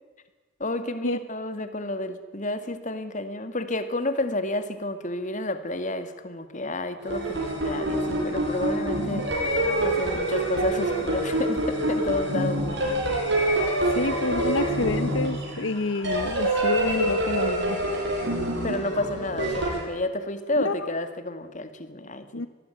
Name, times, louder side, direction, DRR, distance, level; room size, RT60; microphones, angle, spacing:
voice 1, 0.6-9.2 9.8-13.1 18.6-22.4, left 2 dB, 40° left, 2.2 m, -30 dB
sound 1, 7.0-19.8, right 1 dB, 60° right, 7.5 m, -26 dB
voice 2, 13.9-17.8 20.6-20.9 22.3-22.5, left 3 dB, 70° left, 0.9 m, -28 dB
25.0 x 19.5 x 9.3 m
head